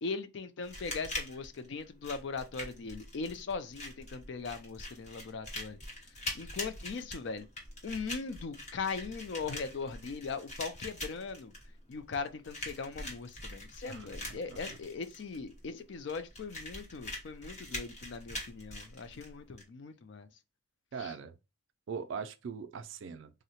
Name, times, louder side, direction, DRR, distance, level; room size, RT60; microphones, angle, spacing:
voice 1, 0.0-5.8 6.3-7.5 7.8-11.5 11.9-20.3 21.0-21.2, left 4 dB, 55° left, 0.4 m, -39 dB
sound 1, 0.6-19.6, left 1 dB, 35° left, 0.9 m, -43 dB
voice 2, 13.9-14.6 20.9-21.3 21.9-23.4, right 6 dB, 65° right, 0.3 m, -41 dB
3.6 x 2.1 x 2.8 m
head